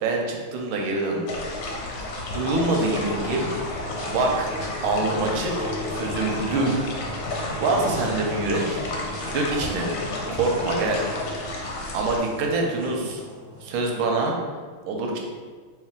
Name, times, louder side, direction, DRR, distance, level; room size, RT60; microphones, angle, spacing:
voice 1, 0.0-1.4 2.3-3.5 4.0-4.5 4.8-5.5 5.9-6.7 7.6-8.8 9.3-9.9 10.3-11.0 11.9-13.2 13.6-14.4 14.9-15.2, right 3 dB, 85° right, 1 dB, 1.5 m, -25 dB
sound 1, 0.8-14.1, left 1 dB, 70° left, 0.5 m, -35 dB
sound 2, 1.3-12.2, left 2 dB, 90° left, 1.6 m, -33 dB
3.2 x 3.0 x 3.6 m, 1.5 s
omnidirectional pair, 2.3 m